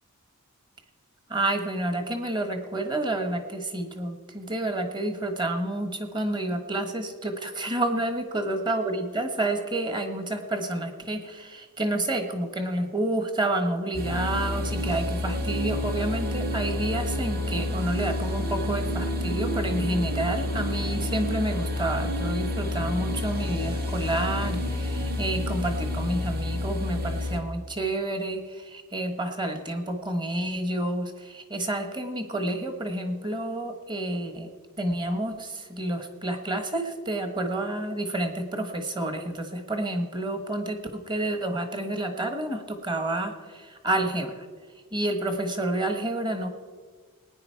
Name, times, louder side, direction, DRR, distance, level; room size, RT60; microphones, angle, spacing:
voice 1, 1.3-34.5 34.8-44.5 44.9-46.5, right 1 dB, 20° right, 6 dB, 1.4 m, -29 dB
sound 1, 13.9-27.4, left 1 dB, 45° right, 1.5 m, -29 dB
19.5 x 9.8 x 4.6 m, 1.5 s
head